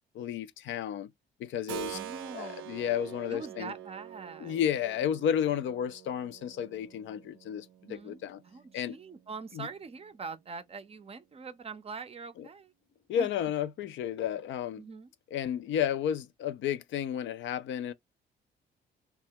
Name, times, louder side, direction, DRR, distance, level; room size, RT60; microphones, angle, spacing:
voice 1, 0.1-1.1 1.4-2.0 2.3-3.7 4.4-7.7 8.0-8.4 8.7-8.9 9.6-9.7 13.1-14.8 15.3-17.9, left 9 dB, 70° left, 0.4 m, -32 dB
Keyboard (musical), 1.7-10.3, right 11 dB, 85° right, 0.5 m, -46 dB
voice 2, 1.9-2.8 3.3-4.6 7.8-12.7 13.2-13.3 14.8-15.1, right 5 dB, 30° right, 0.5 m, -43 dB
2.2 x 2.1 x 2.7 m
cardioid pair, 90°, 20 cm